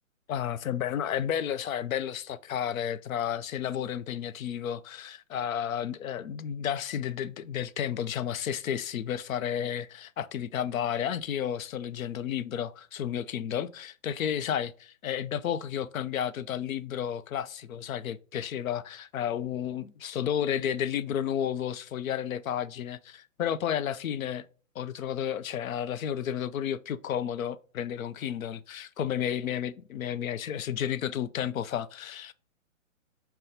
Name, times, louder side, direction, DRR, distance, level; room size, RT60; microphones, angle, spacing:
voice 1, 0.3-23.0 23.4-24.5 24.8-32.3, left 9 dB, 80° left, 0.6 m, -32 dB
5.7 x 2.2 x 3.8 m
hypercardioid pair, 145°, 40 cm